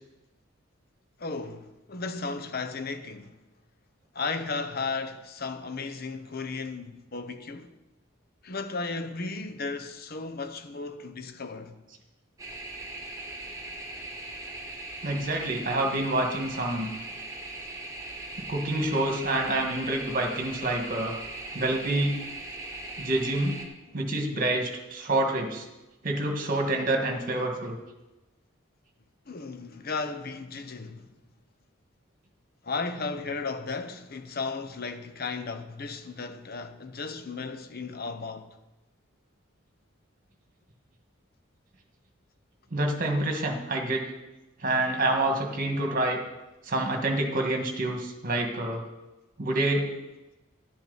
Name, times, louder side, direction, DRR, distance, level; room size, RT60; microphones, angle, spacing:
voice 1, 1.2-3.4 4.1-7.7 8.4-11.8 29.3-31.1 32.6-38.5, left 4 dB, 50° left, 0.9 m, -35 dB
sound 1, 12.4-23.7, right 2 dB, 15° right, 1.4 m, -39 dB
voice 2, 15.0-16.9 18.5-21.2 21.5-22.2 23.0-23.5 23.9-25.6 26.0-27.8 42.7-44.1 44.6-46.2 46.6-48.8 49.4-49.9, right 1 dB, 45° right, 1.7 m, -27 dB
11.5 x 10.5 x 4.1 m
head